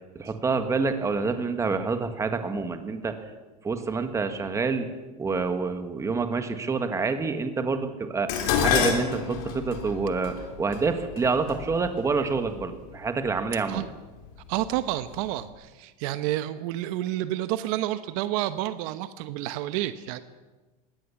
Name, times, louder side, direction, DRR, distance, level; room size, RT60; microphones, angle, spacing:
voice 1, 0.1-3.2 3.6-4.9 5.2-13.9, right 4 dB, 15° right, 8 dB, 1.7 m, -27 dB
Dishes pots and pans, 8.3-12.7 13.5-13.9 14.3-15.2 15.4-15.5, left 7 dB, 65° left, 4.1 m, -29 dB
voice 2, 14.5-20.2, right 14 dB, 60° right, 12 dB, 1.0 m, -29 dB
22.0 x 17.0 x 7.2 m, 1.2 s
supercardioid pair, 145°, 20 cm